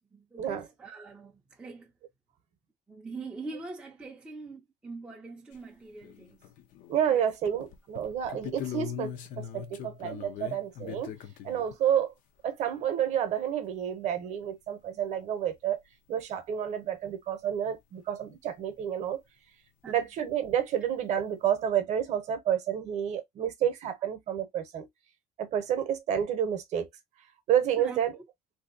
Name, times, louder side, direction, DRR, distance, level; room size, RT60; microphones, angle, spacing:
voice 1, 0.1-1.9 2.9-6.4 7.1-7.3 19.8-20.0 27.8-28.0, right 3 dB, 5° right, 0.4 m, -43 dB
sound 1, 5.5-5.6 6.0-7.1 7.5-11.8 14.4-14.5 14.7-14.8 15.8-15.9 16.5-16.6 20.2-20.3 20.4-20.9, left 10 dB, 50° left, 0.5 m, -41 dB
voice 2, 6.9-11.1 11.4-12.1 12.4-15.8 16.1-19.2 19.9-24.9 25.4-26.9 27.5-28.1, right 9 dB, 45° right, 0.8 m, -29 dB
3.2 x 2.7 x 2.5 m
cardioid pair, 175°, 17 cm